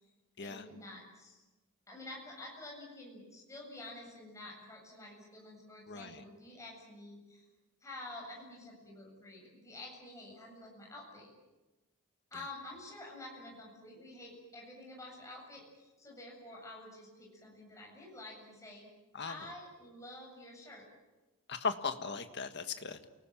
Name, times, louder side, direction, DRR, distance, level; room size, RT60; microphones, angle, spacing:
voice 1, 0.4-1.4 1.9-7.4 7.8-11.3 12.3-18.9 19.3-20.9, left 2 dB, 15° left, -1 dB, 7.7 m, -49 dB
voice 2, 5.9-6.2 19.1-19.5 21.5-23.0, left 5 dB, 50° left, 8 dB, 1.7 m, -38 dB
28.5 x 19.5 x 9.0 m, 1.1 s
head